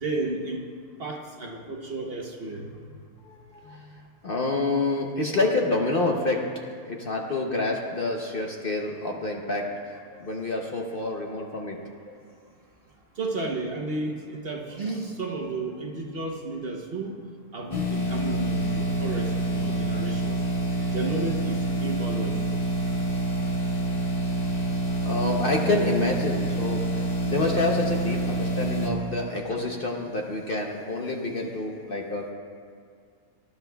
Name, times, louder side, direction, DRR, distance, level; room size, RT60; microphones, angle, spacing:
voice 1, 0.0-0.6 1.0-2.7 13.2-17.2 17.5-20.4 20.9-22.5, right 3 dB, 45° right, 1 dB, 1.1 m, -32 dB
voice 2, 3.2-3.9 4.2-6.5 6.9-9.7 10.1-11.8 12.1-12.2 14.9-15.0 24.5-24.6 25.0-32.3, left 2 dB, 45° left, 0 dB, 0.9 m, -28 dB
sound 1, 17.7-28.9, right 2 dB, 30° left, 1.4 m, -27 dB
18.5 x 11.5 x 2.3 m, 2.2 s
omnidirectional pair, 1.5 m